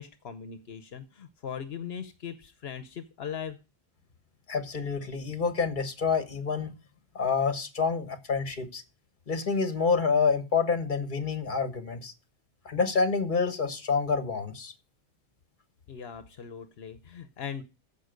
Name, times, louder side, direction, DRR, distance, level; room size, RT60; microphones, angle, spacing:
voice 1, 0.0-3.6 15.9-17.6, left 7 dB, 75° left, 10 dB, 1.1 m, -39 dB
voice 2, 4.5-6.7 7.1-8.8 9.3-12.1 12.6-14.7, left 5 dB, 50° left, 9 dB, 1.5 m, -27 dB
15.0 x 5.5 x 5.1 m, 0.30 s
omnidirectional pair, 1.1 m